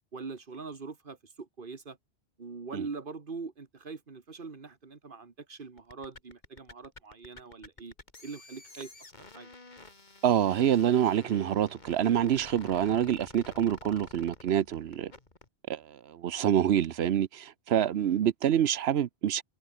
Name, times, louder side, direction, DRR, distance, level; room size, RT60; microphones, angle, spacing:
voice 1, 0.1-2.0 2.4-7.9 8.2-8.9 9.4-9.5 18.0-18.2, right 4 dB, 55° right, 1.9 m, -42 dB
sound 1, 5.8-15.5, left 3 dB, 45° left, 2.5 m, -50 dB
voice 2, 10.2-15.1 15.7-19.4, right 10 dB, 75° right, 1.0 m, -26 dB
omnidirectional pair, 1.1 m